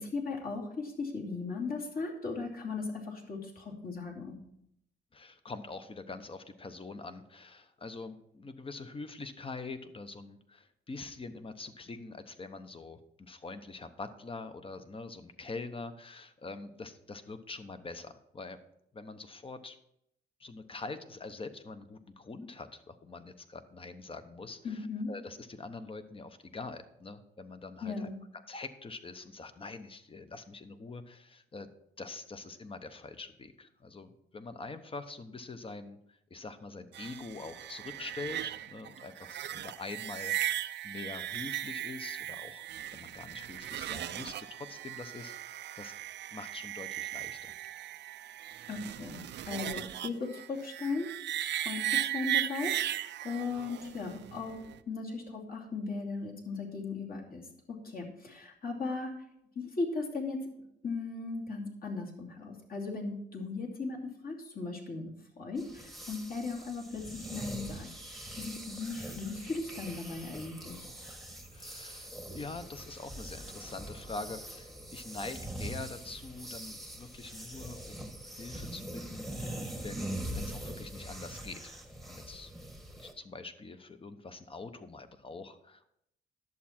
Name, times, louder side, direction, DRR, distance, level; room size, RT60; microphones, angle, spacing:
voice 1, 0.0-4.4 24.6-25.1 27.8-28.1 48.7-51.1 51.6-52.7 53.2-54.6 54.9-59.2 59.5-60.5 60.8-70.9, left 4 dB, 45° left, -1 dB, 2.6 m, -37 dB
voice 2, 5.1-18.6 18.9-19.8 20.4-31.7 32.0-42.6 42.9-45.9 46.3-47.5 71.5-81.8 82.0-82.5 83.0-85.9, left 3 dB, 25° left, 10 dB, 0.9 m, -44 dB
sound 1, 36.9-54.8, right 12 dB, 60° right, 0.5 m, -37 dB
sound 2, 65.6-83.1, right 1 dB, ahead, 1.3 m, -43 dB
11.0 x 7.3 x 4.4 m, 0.77 s
cardioid pair, 90°, 20 cm